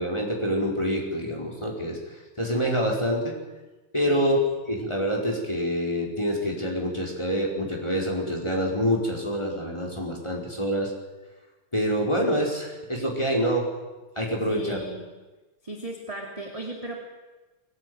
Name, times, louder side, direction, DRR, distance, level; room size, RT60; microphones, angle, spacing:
voice 1, 0.0-3.4 3.9-4.4 4.7-10.9 11.7-13.7 14.2-14.8, equal, 10° left, -1 dB, 4.5 m, -26 dB
voice 2, 14.5-15.0 15.6-17.0, right 1 dB, 10° right, 0 dB, 2.3 m, -36 dB
21.5 x 18.5 x 9.5 m, 1.2 s
omnidirectional pair, 3.6 m